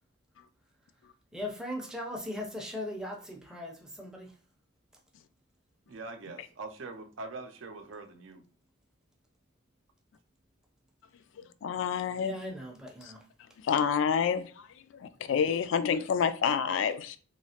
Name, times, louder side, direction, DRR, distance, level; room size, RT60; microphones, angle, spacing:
voice 1, 1.3-4.3 12.2-13.2, left 1 dB, 5° right, 0.5 m, -39 dB
voice 2, 5.9-8.4 11.4-11.5, right 3 dB, 65° right, 0.5 m, -43 dB
voice 3, 11.6-12.4 13.0-13.1 13.6-17.2, left 7 dB, 65° left, 0.3 m, -28 dB
3.1 x 2.7 x 2.8 m
head